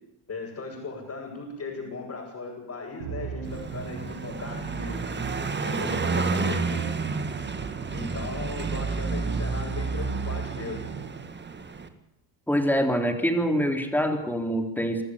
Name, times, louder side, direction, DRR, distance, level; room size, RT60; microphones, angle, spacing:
voice 1, 0.3-5.0 5.6-7.0 7.9-10.8, left 3 dB, 35° left, -4 dB, 7.6 m, -37 dB
Musical instrument, 3.0-11.5, right 9 dB, 90° right, 2.5 m, -41 dB
Car passing by, 3.4-11.9, right 4 dB, 25° right, 2.0 m, -30 dB
voice 2, 12.5-15.0, equal, 5° left, 4 dB, 3.9 m, -25 dB
25.5 x 13.5 x 8.6 m, 0.84 s
cardioid pair, 95°, 45 cm